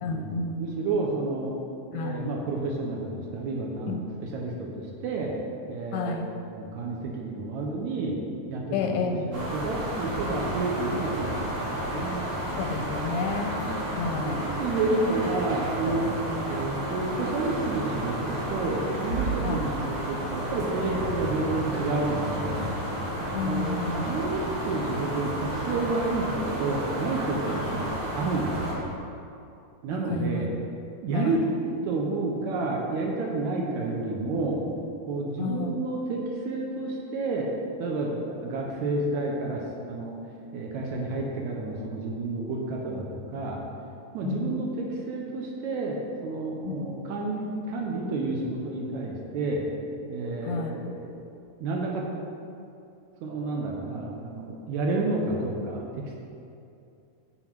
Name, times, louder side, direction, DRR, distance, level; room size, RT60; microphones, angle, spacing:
voice 1, 0.0-0.6 1.9-2.3 3.9-4.0 5.9-6.3 8.7-9.3 12.6-14.5 16.3-16.4 19.4-19.7 23.3-24.2 27.5-27.9 30.1-30.4 31.1-31.4 35.4-35.7 44.2-44.6 46.7-46.9 50.4-50.7, left 4 dB, 85° left, 2 dB, 2.2 m, -31 dB
voice 2, 0.6-1.6 1.9-4.0 4.3-5.3 5.7-6.2 6.6-8.2 8.5-9.0 9.3-12.2 14.0-16.1 16.4-22.7 23.4-23.7 24.1-27.9 28.1-28.9 29.8-30.5 31.0-31.4 31.9-34.6 35.1-37.5 37.8-39.6 39.9-40.2 40.5-43.6 44.1-49.6 50.1-51.2 51.6-52.0 53.2-56.2, right 3 dB, 75° right, -1 dB, 1.9 m, -30 dB
sound 1, 9.3-28.7, right 1 dB, 55° right, 2.3 m, -31 dB
7.7 x 4.1 x 4.5 m, 2.6 s
omnidirectional pair, 3.5 m